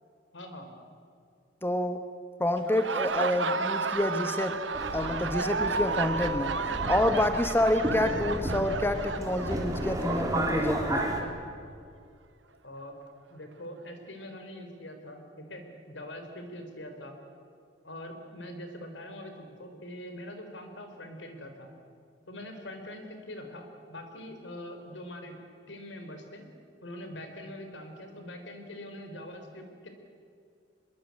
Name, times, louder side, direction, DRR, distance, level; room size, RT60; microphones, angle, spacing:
voice 1, 0.3-0.7 7.8-8.1 12.6-12.9 13.3-17.1 17.8-21.7 22.3-25.4 25.7-26.4 26.8-29.9, left 1 dB, 80° left, 5 dB, 4.2 m, -43 dB
voice 2, 1.6-2.1 2.4-4.6 4.9-6.5 6.9-11.1, left 1 dB, 10° left, 7 dB, 1.1 m, -28 dB
Laughter, 2.6-10.2, right 4 dB, 90° right, 1.1 m, -32 dB
Subway metro underground, 4.7-11.2, right 1 dB, 20° right, 3.4 m, -33 dB
24.5 x 22.5 x 8.6 m, 2.4 s
head